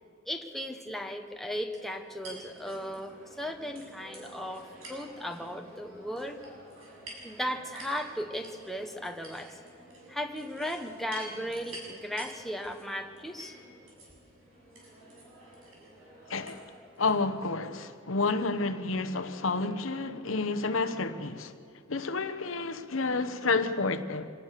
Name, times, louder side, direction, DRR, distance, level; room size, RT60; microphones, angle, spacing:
voice 1, 0.2-6.4 7.2-9.6 10.1-13.6, equal, ahead, 1.2 m, -36 dB
sound 1, 1.7-17.2, right 1 dB, 90° right, 7.2 m, -49 dB
voice 2, 16.3-16.6 17.0-21.5 21.9-24.3, left 3 dB, 75° left, 1.1 m, -30 dB
26.0 x 19.0 x 6.7 m
head